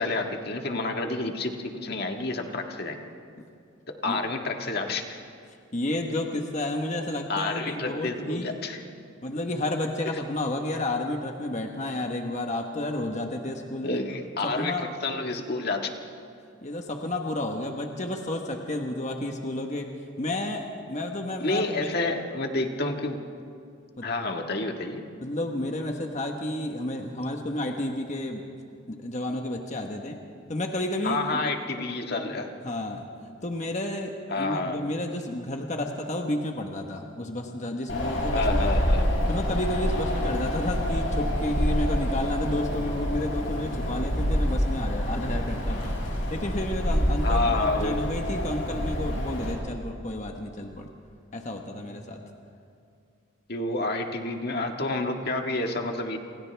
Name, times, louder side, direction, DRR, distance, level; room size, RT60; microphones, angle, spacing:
voice 1, 0.0-1.6 1.8-3.0 3.9-5.0 7.3-8.8 13.8-15.9 21.4-23.2 24.0-25.0 31.0-32.5 34.3-34.9 38.3-39.1 47.2-48.0 53.5-56.2, left 2 dB, 50° left, 3 dB, 1.7 m, -29 dB
voice 2, 5.7-8.5 9.2-14.0 14.4-14.9 16.6-19.9 20.2-22.0 24.0-24.1 25.2-28.4 28.9-30.2 30.5-31.4 32.6-33.0 33.4-38.7 39.3-50.9 51.3-52.2, left 1 dB, 35° left, 3 dB, 1.3 m, -31 dB
Wind, 37.9-49.5, equal, 70° left, 6.4 m, -27 dB
28.0 x 27.5 x 3.5 m, 2.4 s
head